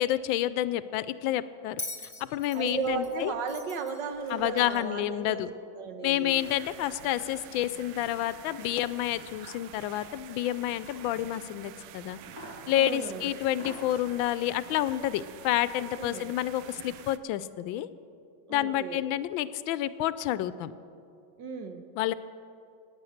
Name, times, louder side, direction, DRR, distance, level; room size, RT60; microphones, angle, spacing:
voice 1, 0.0-1.8 2.2-3.3 4.3-5.5 6.0-12.2 12.7-17.9 18.5-20.7 22.0-22.1, left 13 dB, 85° left, 15 dB, 1.3 m, -29 dB
Bell, 1.8-5.0 6.1-6.2, left 2 dB, 20° left, 0.4 m, -42 dB
voice 2, 2.5-5.4 5.7-6.4 12.7-13.3 16.0-16.2 18.5-19.0 21.4-21.8, right 5 dB, 70° right, 7 dB, 1.7 m, -35 dB
sound 1, 2.7-3.1 4.0-4.8 6.2-7.2 8.3-9.2 10.6-11.1 12.2-12.8 13.4-14.0, equal, 50° right, 4.0 m, -50 dB
sound 2, 6.4-17.2, right 10 dB, 90° right, 1.4 m, -48 dB
18.5 x 9.4 x 6.5 m, 2.5 s
omnidirectional pair, 2.1 m